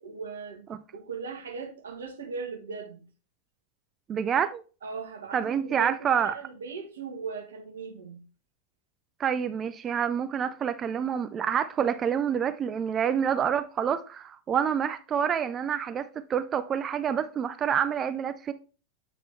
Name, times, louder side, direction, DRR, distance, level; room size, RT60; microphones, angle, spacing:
voice 1, 0.0-3.0 4.8-8.2, right 5 dB, 65° right, 1.3 m, -39 dB
voice 2, 4.1-4.6 5.3-6.3 9.2-18.5, right 8 dB, 25° right, 0.3 m, -27 dB
8.6 x 3.7 x 3.4 m
figure-of-eight pair, 90°, 0 cm